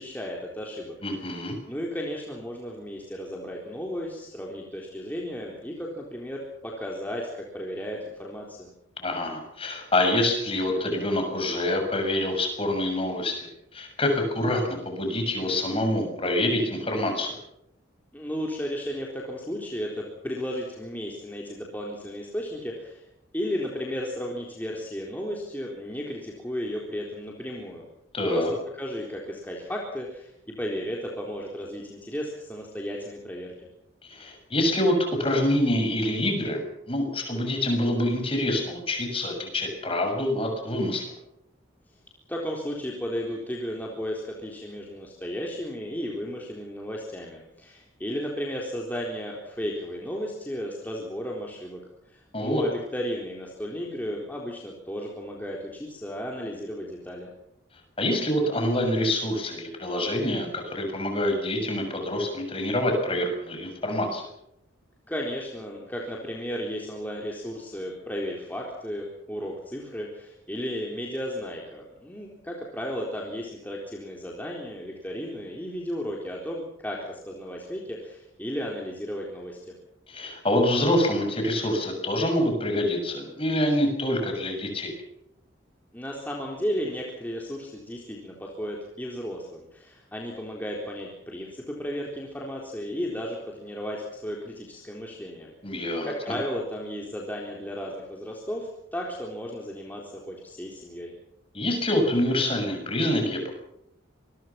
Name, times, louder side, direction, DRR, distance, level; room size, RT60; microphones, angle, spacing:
voice 1, 0.0-8.7 18.1-23.0 23.3-27.9 28.3-28.4 28.7-30.3 30.6-33.5 42.3-51.8 52.1-57.3 65.1-79.7 85.9-101.1, equal, 10° left, -2 dB, 3.9 m, -34 dB
voice 2, 1.0-1.6 9.0-17.4 28.1-28.5 34.0-34.9 35.2-41.1 52.3-52.6 58.0-64.3 80.1-84.9 95.6-96.1 101.5-103.5, left 1 dB, 30° left, 4 dB, 6.8 m, -26 dB
26.5 x 22.5 x 5.9 m, 0.78 s
head